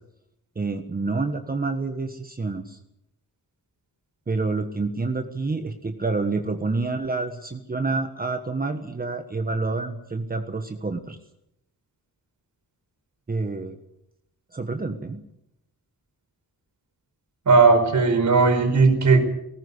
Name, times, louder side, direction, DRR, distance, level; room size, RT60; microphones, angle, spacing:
voice 1, 0.5-2.8 4.3-11.2 13.3-13.8 14.5-15.2, right 3 dB, 25° right, 6 dB, 1.4 m, -28 dB
voice 2, 17.5-19.2, right 4 dB, 50° right, 7 dB, 4.8 m, -17 dB
19.5 x 18.5 x 8.2 m, 0.81 s
wide cardioid pair, 160°, 36 cm